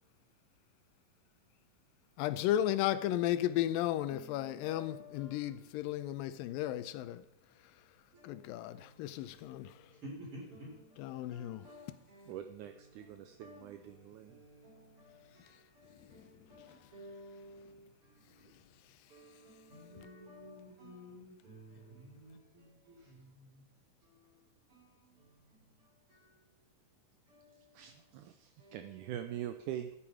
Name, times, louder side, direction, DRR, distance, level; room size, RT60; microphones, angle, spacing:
voice 1, 2.2-7.3 8.2-9.9 11.0-11.7 16.1-16.2 16.6-16.8, left 12 dB, 85° left, 2.4 m, -34 dB
voice 2, 4.1-5.7 8.1-8.4 8.7-9.1 9.3-18.7 19.1-23.6 24.0-24.4 24.7-26.5 27.3-27.8 28.6-28.8, equal, 40° right, 5.5 m, -54 dB
voice 3, 12.3-14.4 27.7-29.9, right 11 dB, 80° right, 1.9 m, -43 dB
12.5 x 9.9 x 4.9 m
omnidirectional pair, 4.0 m